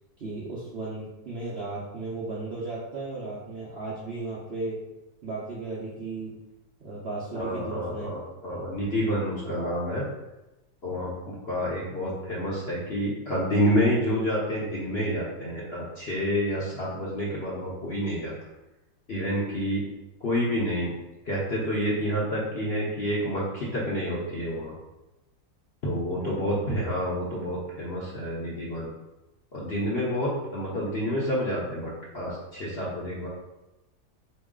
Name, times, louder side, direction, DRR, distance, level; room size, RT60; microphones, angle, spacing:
voice 1, 0.2-4.8 5.2-6.4 6.8-8.1 8.5-8.7 9.4-9.8 10.8-11.1 26.2-26.4, right 3 dB, 55° right, -7 dB, 0.7 m, -35 dB
voice 2, 7.3-10.0 10.8-18.3 19.1-19.8 20.2-20.9 21.2-24.7 25.8-28.9 29.5-33.3, equal, 50° left, -7 dB, 0.8 m, -28 dB
4.1 x 3.1 x 3.6 m, 0.99 s
omnidirectional pair, 1.9 m